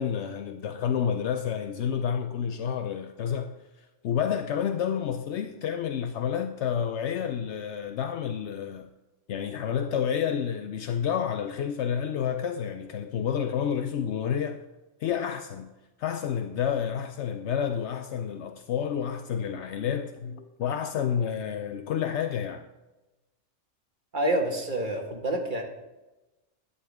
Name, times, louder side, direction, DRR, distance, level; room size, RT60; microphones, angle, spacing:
voice 1, 0.0-8.9 9.3-14.6 15.0-15.7 16.0-22.7, left 8 dB, 75° left, 0.9 m, -29 dB
voice 2, 24.1-25.6, right 1 dB, 45° right, 1.8 m, -27 dB
11.0 x 9.6 x 3.6 m
omnidirectional pair, 1.2 m